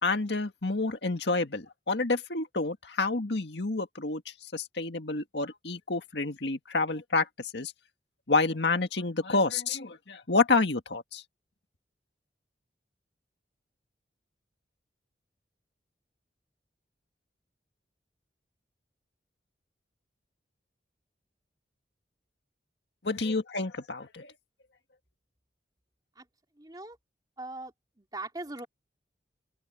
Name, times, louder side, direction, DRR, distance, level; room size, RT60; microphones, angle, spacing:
voice 1, 0.0-4.2 4.5-7.3 7.5-7.7 8.3-11.2 23.0-24.3, left 3 dB, 75° left, 1.8 m, -28 dB
voice 2, 26.6-27.0 27.4-27.7 28.0-28.7, right 2 dB, 25° right, 3.1 m, -40 dB
open air
head